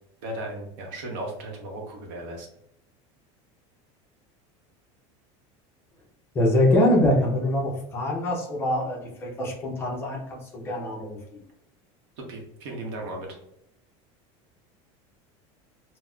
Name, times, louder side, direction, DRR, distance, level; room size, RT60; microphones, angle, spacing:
voice 1, 0.2-2.5 12.3-13.3, right 1 dB, 55° right, 1 dB, 0.8 m, -36 dB
voice 2, 6.3-11.4, left 1 dB, 15° left, -1 dB, 0.5 m, -24 dB
3.8 x 2.0 x 2.2 m, 0.81 s
cardioid pair, 180°, 15 cm